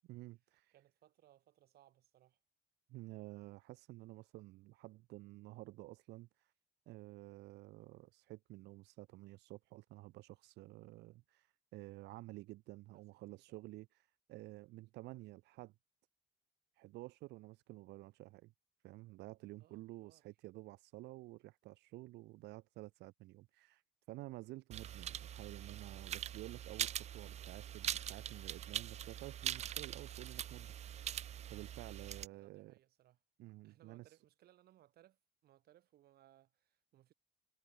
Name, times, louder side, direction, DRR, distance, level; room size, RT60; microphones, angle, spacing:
voice 1, 0.1-0.7 2.9-6.5 6.9-15.7 16.7-18.5 18.8-23.8 24.1-31.1 31.5-32.7 33.4-34.2, right 19 dB, 85° right, 1.3 m, -52 dB
voice 2, 0.7-2.4 12.9-13.6 19.6-20.2 32.3-33.2 33.6-37.1, right 13 dB, 70° right, 7.3 m, -67 dB
sound 1, 24.7-32.3, right 10 dB, 40° right, 0.4 m, -43 dB
cardioid pair, 110°, 17 cm